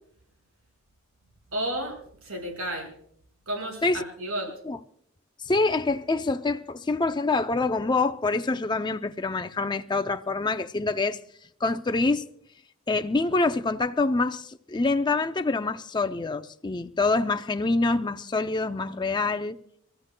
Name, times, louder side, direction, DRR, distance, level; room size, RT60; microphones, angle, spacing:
voice 1, 1.5-2.9 3.5-4.5, right 1 dB, 80° right, 5.1 m, -32 dB
voice 2, 5.5-11.2 11.6-12.2 12.9-19.6, left 3 dB, 20° left, 0.5 m, -26 dB
29.5 x 14.5 x 2.2 m
head